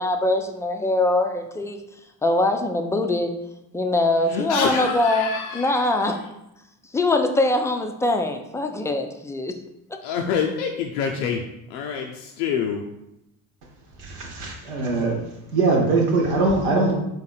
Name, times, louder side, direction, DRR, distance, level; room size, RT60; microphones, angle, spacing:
voice 1, 0.0-1.8 2.2-3.4 3.7-6.2 6.9-9.5, left 2 dB, 5° left, 5 dB, 0.3 m, -22 dB
voice 2, 4.3-6.3 10.0-12.8, left 6 dB, 85° left, 2 dB, 0.5 m, -27 dB
voice 3, 14.0-15.2 15.5-16.9, right 3 dB, 85° right, -1 dB, 1.1 m, -21 dB
3.9 x 2.6 x 4.2 m, 0.86 s
hypercardioid pair, 55°, 48 cm